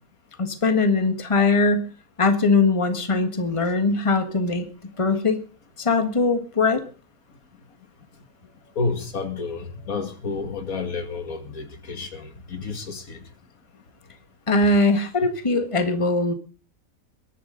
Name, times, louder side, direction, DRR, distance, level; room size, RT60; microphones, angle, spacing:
voice 1, 0.4-1.9 2.2-4.7 5.0-5.4 5.8-6.8 14.5-16.3, left 3 dB, 25° left, 8 dB, 1.6 m, -21 dB
voice 2, 8.8-13.2, left 4 dB, 85° left, 7 dB, 2.5 m, -30 dB
22.0 x 11.0 x 3.9 m, 0.37 s
omnidirectional pair, 1.4 m